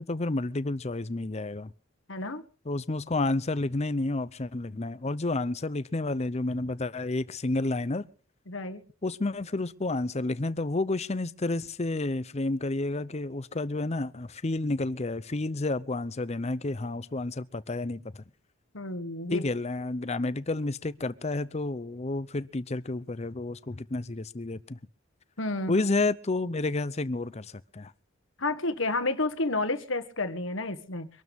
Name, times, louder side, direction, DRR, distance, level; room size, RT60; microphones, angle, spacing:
voice 1, 0.0-1.7 2.7-8.1 9.0-18.2 19.3-24.8 25.7-27.9, left 2 dB, 35° left, 0.7 m, -30 dB
voice 2, 2.1-2.4 8.5-8.8 18.7-19.5 25.4-25.8 28.4-31.1, left 2 dB, 70° left, 1.5 m, -30 dB
24.5 x 12.5 x 3.6 m
head